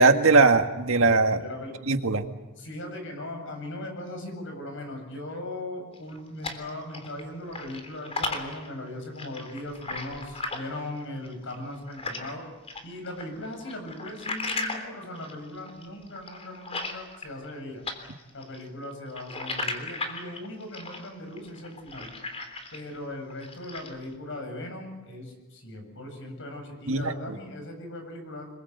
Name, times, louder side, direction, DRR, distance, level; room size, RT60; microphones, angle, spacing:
voice 1, 0.0-1.4 1.9-2.2 26.9-27.4, right 3 dB, 70° right, 6 dB, 2.0 m, -20 dB
voice 2, 1.3-1.8 2.6-12.5 12.8-17.8 18.3-22.1 22.7-28.5, left 1 dB, 60° left, 5 dB, 7.9 m, -39 dB
sound 1, 5.9-7.2 7.5-12.3 12.7-17.6 17.8-23.0 23.3-24.0, left 3 dB, 30° left, 3.5 m, -36 dB
27.0 x 22.5 x 8.2 m, 1.1 s
head